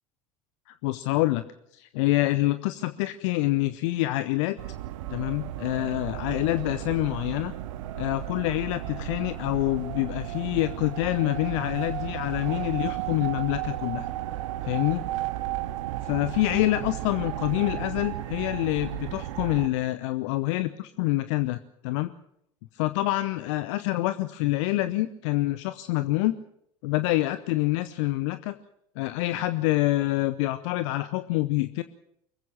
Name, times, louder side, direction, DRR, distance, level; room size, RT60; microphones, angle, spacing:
voice 1, 0.7-1.4 1.7-4.6 5.1-7.5 8.0-14.1 14.6-15.0 16.0-22.1 22.7-26.3 26.8-28.6 29.0-31.8, left 17 dB, 60° left, 12 dB, 0.8 m, -26 dB
sound 1, 4.6-19.7, right 14 dB, 70° right, 1.1 m, -34 dB
24.0 x 15.5 x 7.3 m, 0.75 s
figure-of-eight pair, 70°, 17 cm